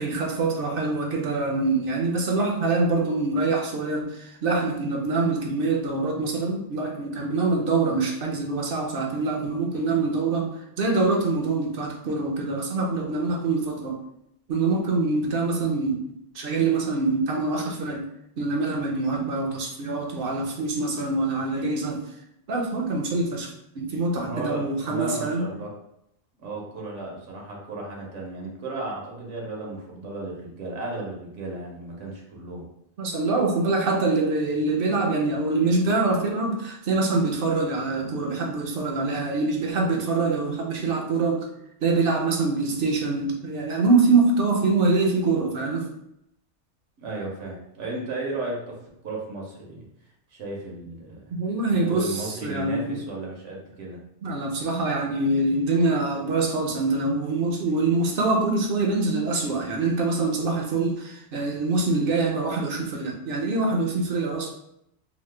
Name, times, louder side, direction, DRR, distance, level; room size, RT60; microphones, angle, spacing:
voice 1, 0.0-14.0 14.5-18.0 18.4-22.0 22.5-25.5 33.0-41.5 41.8-45.9 51.3-53.1 54.2-64.5, right 3 dB, 60° right, 1 dB, 0.6 m, -25 dB
voice 2, 24.3-25.7 26.4-32.6 47.0-48.8 49.0-49.9 50.3-51.3 51.7-54.0, right 2 dB, 85° right, -2 dB, 1.1 m, -34 dB
2.9 x 2.1 x 3.2 m, 0.80 s
omnidirectional pair, 1.2 m